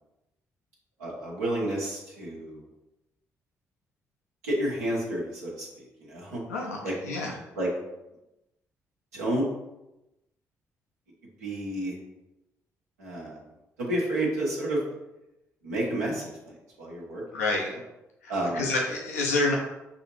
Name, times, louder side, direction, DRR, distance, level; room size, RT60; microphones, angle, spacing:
voice 1, 1.0-2.6 4.4-6.4 6.8-6.9 7.6-7.7 9.1-9.4 11.4-12.0 13.0-13.4 13.8-14.8 15.6-17.2 17.7-17.8 18.3-18.7, right 1 dB, 85° right, -4 dB, 1.1 m, -30 dB
voice 2, 6.5-7.3 17.3-17.7 18.2-19.6, left 2 dB, 85° left, -1 dB, 0.5 m, -28 dB
6.0 x 2.7 x 3.0 m, 0.94 s
figure-of-eight pair, 40°, 8 cm